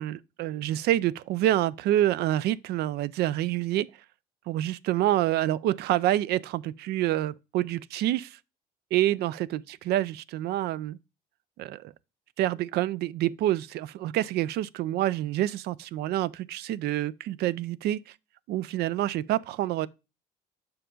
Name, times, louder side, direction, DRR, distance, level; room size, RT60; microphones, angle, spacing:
voice 1, 0.0-3.9 4.5-8.4 8.9-11.0 11.6-11.9 12.4-18.1 18.5-19.9, right 14 dB, 75° right, 0.4 m, -27 dB
7.0 x 5.1 x 3.7 m
cardioid pair, 110°, 17 cm